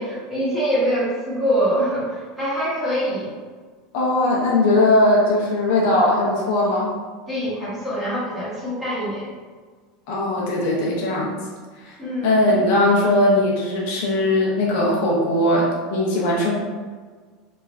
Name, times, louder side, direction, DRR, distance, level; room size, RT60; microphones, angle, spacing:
voice 1, 0.0-3.3 7.3-9.3 12.0-12.6, equal, 5° right, -11 dB, 0.8 m, -24 dB
voice 2, 3.9-6.9 10.1-11.4 11.8-11.9 12.2-16.6, left 1 dB, 60° left, -3 dB, 0.6 m, -19 dB
3.0 x 2.2 x 2.4 m, 1.5 s
supercardioid pair, 175°, 0 cm